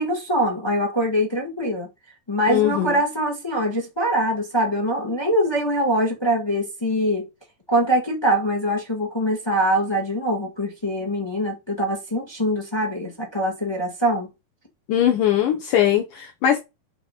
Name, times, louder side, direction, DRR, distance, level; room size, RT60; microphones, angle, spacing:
voice 1, 0.0-1.9 2.3-7.2 7.7-14.3, equal, 45° left, 0.3 m, -23 dB
voice 2, 2.5-3.0 14.9-16.6, left 10 dB, 70° left, 2.5 m, -20 dB
8.4 x 4.1 x 5.4 m
omnidirectional pair, 4.2 m